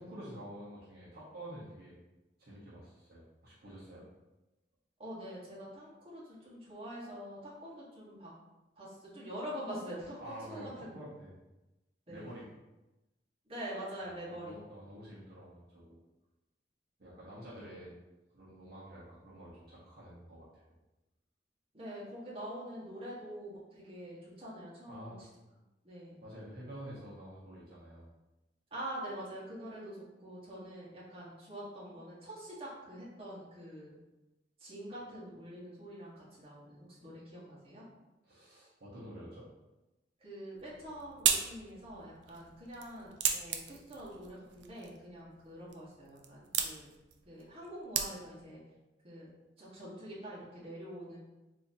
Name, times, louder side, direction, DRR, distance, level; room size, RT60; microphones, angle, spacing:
voice 1, 0.0-1.9 2.4-4.0 10.2-11.3 12.1-12.4 14.3-16.0 17.0-17.9 18.3-20.6 24.9-25.2 26.2-28.1 38.2-39.5, equal, 60° right, -8 dB, 1.0 m, -48 dB
voice 2, 5.0-8.3 8.8-11.0 12.1-12.4 13.5-14.5 21.7-25.2 25.8-26.2 28.7-34.0 34.6-37.8 40.2-46.9 47.2-48.6 49.0-49.3 49.6-51.2, equal, 35° right, -8 dB, 1.2 m, -45 dB
sound 1, 40.6-48.5, right 7 dB, 75° right, 0.4 m, -37 dB
3.8 x 2.8 x 2.7 m, 1.0 s
head